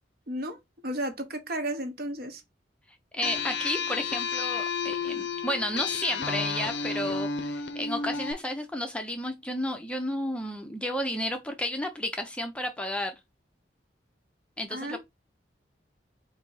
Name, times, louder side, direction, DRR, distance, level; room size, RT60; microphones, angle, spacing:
voice 1, 0.3-0.6 0.8-2.4 14.7-15.0, right 1 dB, 55° right, 0.8 m, -33 dB
voice 2, 3.1-13.1 14.6-15.0, left 1 dB, 5° left, 0.5 m, -32 dB
sound 1, 3.2-8.3, left 5 dB, 65° left, 0.5 m, -31 dB
4.0 x 2.7 x 3.8 m
head